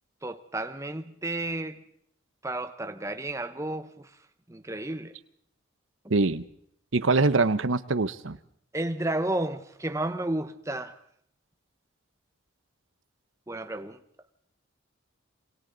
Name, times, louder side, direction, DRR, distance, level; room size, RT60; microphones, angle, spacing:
voice 1, 0.2-1.8 2.4-4.1 4.5-5.1 8.7-11.0 13.5-14.0, right 1 dB, 15° right, 0.9 m, -32 dB
voice 2, 6.1-6.4 6.9-8.4, right 3 dB, 70° right, 0.9 m, -23 dB
28.0 x 25.0 x 4.0 m
head